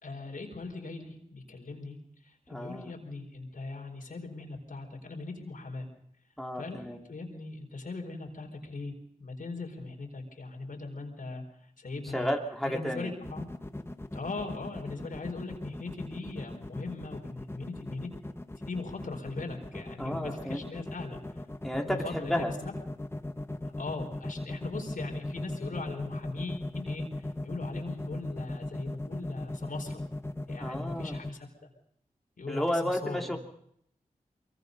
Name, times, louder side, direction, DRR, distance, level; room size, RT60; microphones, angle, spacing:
voice 1, 0.0-2.0 2.2-5.9 6.6-8.9 9.2-12.3 12.6-13.5 14.1-18.1 18.7-21.4 21.8-22.5 23.6-30.0 30.5-31.7 32.4-33.4, left 3 dB, 70° left, 3 dB, 4.7 m, -40 dB
voice 2, 2.5-2.9 6.4-7.0 12.1-13.1 20.0-20.6 21.6-22.5 30.6-31.2 32.5-33.4, equal, ahead, 1 dB, 2.9 m, -32 dB
sound 1, 13.2-31.3, left 1 dB, 15° left, 1.4 m, -38 dB
23.5 x 23.0 x 5.4 m, 0.69 s
cardioid pair, 50°, 14 cm